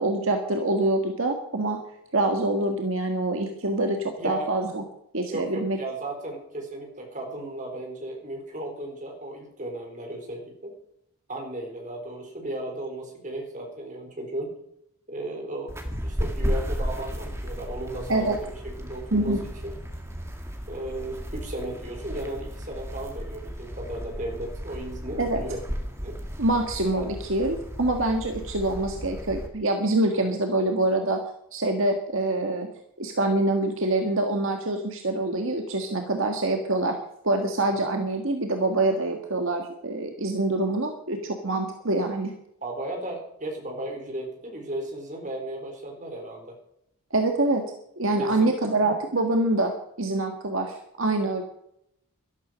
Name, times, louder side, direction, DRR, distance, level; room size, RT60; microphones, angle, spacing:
voice 1, 0.0-1.8 2.1-4.8 5.1-5.8 18.1-18.4 19.1-19.4 25.2-25.4 26.4-31.2 31.5-32.7 33.0-37.0 37.2-42.3 47.1-47.6 48.0-49.7 50.0-51.4, right 2 dB, 65° right, 4 dB, 1.7 m, -25 dB
voice 2, 4.2-4.6 5.3-10.7 11.3-14.5 15.1-15.7 16.0-19.8 20.7-25.6 26.0-26.2 27.0-27.1 30.1-30.4 37.6-37.7 42.6-46.5 48.2-48.5, right 1 dB, 35° right, 2 dB, 4.1 m, -35 dB
sound 1, 15.7-29.5, equal, 10° right, 1.8 m, -34 dB
12.5 x 12.5 x 6.3 m, 0.75 s
head